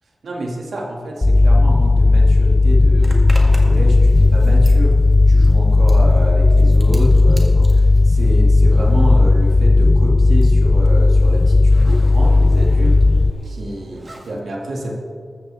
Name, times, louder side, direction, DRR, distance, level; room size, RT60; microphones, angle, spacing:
voice 1, 0.2-5.0 5.3-13.0 13.5-14.9, right 1 dB, 85° right, -1 dB, 2.2 m, -28 dB
sound 1, 1.2-13.3, left 2 dB, 20° left, 0.3 m, -13 dB
Zipper (clothing), 3.0-9.2 9.4-14.4, right 1 dB, 30° right, 1.7 m, -41 dB
14.0 x 13.5 x 3.5 m, 2.1 s
wide cardioid pair, 145°, 0 cm